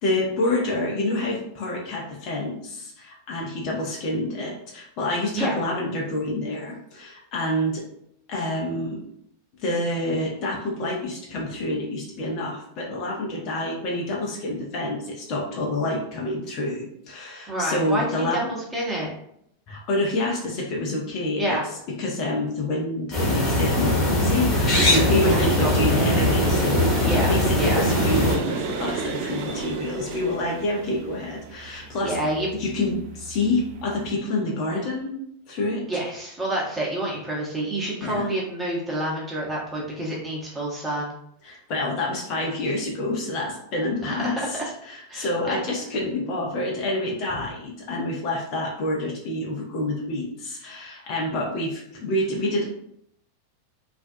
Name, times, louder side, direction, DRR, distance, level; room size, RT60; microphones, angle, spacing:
voice 1, 0.0-7.8 8.3-9.0 9.6-18.5 19.7-21.6 22.0-32.2 32.5-35.1 35.5-36.0 38.0-38.3 41.4-52.6, left 1 dB, 40° left, -2 dB, 0.6 m, -27 dB
voice 2, 17.5-19.1 21.4-21.6 25.2-26.1 27.0-27.8 31.6-32.5 35.9-41.1 44.1-44.7 45.1-45.6, right 1 dB, 10° right, -4 dB, 0.9 m, -28 dB
sound 1, 23.1-28.3, left 1 dB, 25° left, 1.0 m, -21 dB
sound 2, 24.8-34.1, right 5 dB, 45° right, 0.3 m, -31 dB
2.5 x 2.2 x 2.5 m, 0.72 s
figure-of-eight pair, 90°, 0 cm